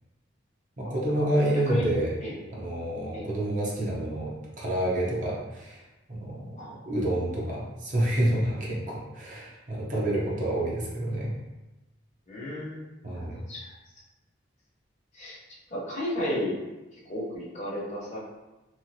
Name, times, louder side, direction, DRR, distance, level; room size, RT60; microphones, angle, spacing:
voice 1, 0.8-2.1 2.5-5.8 6.1-6.5 6.9-11.3 13.0-13.4, right 1 dB, 40° right, -5 dB, 0.7 m, -28 dB
voice 2, 12.3-13.0 13.3-13.7 15.1-16.6 16.9-18.2, equal, 35° left, -6 dB, 0.8 m, -33 dB
3.0 x 2.6 x 2.7 m, 1.0 s
head